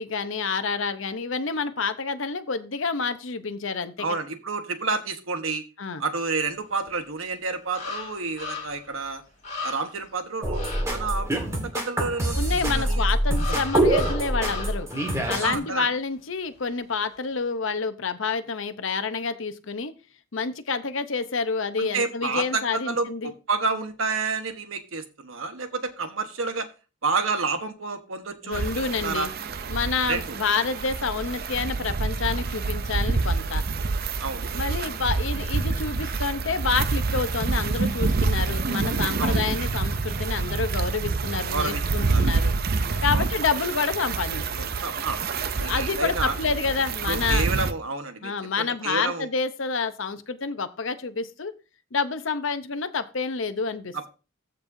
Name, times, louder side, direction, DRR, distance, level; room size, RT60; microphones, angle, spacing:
voice 1, 0.0-4.1 5.8-6.0 12.3-14.9 15.3-19.9 20.3-23.3 28.4-29.3 29.7-33.6 34.5-42.5 43.0-44.7 45.6-47.5 48.2-51.5 51.9-54.1, left 5 dB, 70° left, 10 dB, 0.8 m, -28 dB
voice 2, 4.0-5.6 6.0-9.2 9.6-12.4 12.7-13.1 13.5-13.6 15.4-15.9 21.8-26.7 27.0-29.3 30.1-30.4 34.2-34.5 39.2-39.4 41.5-42.3 43.1-43.3 44.8-45.2 45.6-46.3 47.1-48.3 48.6-49.3 53.9-54.1, right 4 dB, 80° right, 8 dB, 1.3 m, -29 dB
sound 1, 6.9-7.0 7.7-8.9 9.2-9.3 9.4-10.0 10.5-10.8 13.3-15.3 15.6-15.8, left 4 dB, 35° left, 3.3 m, -36 dB
sound 2, 10.4-15.6, right 1 dB, 15° right, 1.7 m, -25 dB
sound 3, 28.5-47.7, right 4 dB, 50° right, 0.6 m, -27 dB
14.5 x 5.4 x 2.7 m, 0.32 s
head